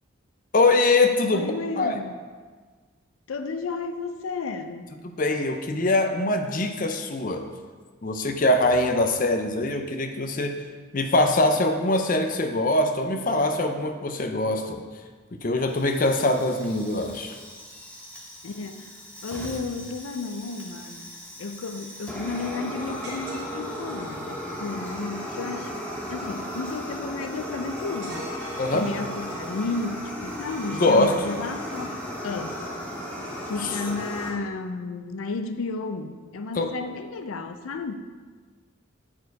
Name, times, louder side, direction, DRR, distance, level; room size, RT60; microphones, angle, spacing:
voice 1, 0.5-1.5 1.8-2.0 5.0-7.4 8.0-10.5 10.9-14.8 15.4-17.4 28.6-28.9 30.7-31.1 36.6-36.7, left 2 dB, 40° left, 5 dB, 0.6 m, -23 dB
voice 2, 1.3-2.2 3.3-4.9 18.4-21.1 21.4-32.6 33.5-37.9, left 3 dB, 85° left, 8 dB, 0.5 m, -33 dB
Fire, 15.7-34.3, equal, 5° left, 1.0 m, -36 dB
sound 1, 23.0-24.2 28.0-29.6, right 2 dB, 55° right, 1.9 m, -42 dB
8.6 x 4.6 x 4.7 m, 1.5 s
head